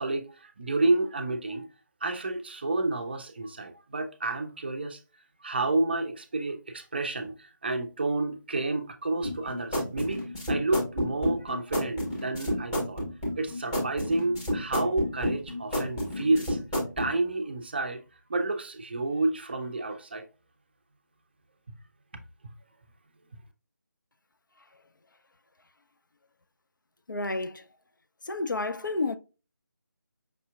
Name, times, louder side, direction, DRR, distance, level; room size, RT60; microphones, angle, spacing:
voice 1, 0.0-1.7 2.0-5.0 5.4-13.0 13.4-16.6 17.0-18.0 18.3-20.3, right 2 dB, 30° right, 0.4 m, -30 dB
sound 1, 9.2-17.1, equal, 10° left, 0.9 m, -30 dB
voice 2, 27.1-27.7 28.2-29.2, left 2 dB, 80° left, 0.5 m, -30 dB
5.3 x 2.7 x 2.3 m
figure-of-eight pair, 160°, 10 cm